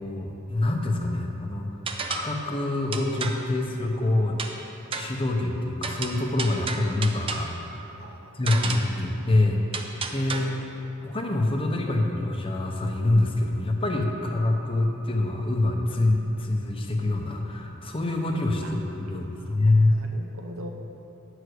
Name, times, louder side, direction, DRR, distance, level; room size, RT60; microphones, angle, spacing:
voice 1, 0.0-1.7 2.1-4.3 4.9-7.8 8.3-9.6 10.1-10.7 11.0-20.0, left 2 dB, 25° left, 1 dB, 0.8 m, -25 dB
sound 1, 1.9-2.4 2.9-3.5 4.4-4.6 4.9-5.2 5.8-7.6 8.5-9.0 9.7-10.4, right 4 dB, 25° right, 0.5 m, -33 dB
voice 2, 8.0-8.9 9.3-9.4 10.3-10.7 18.6-18.8 19.1-20.7, equal, 80° right, 3 dB, 0.8 m, -43 dB
9.3 x 4.8 x 6.4 m, 2.9 s
head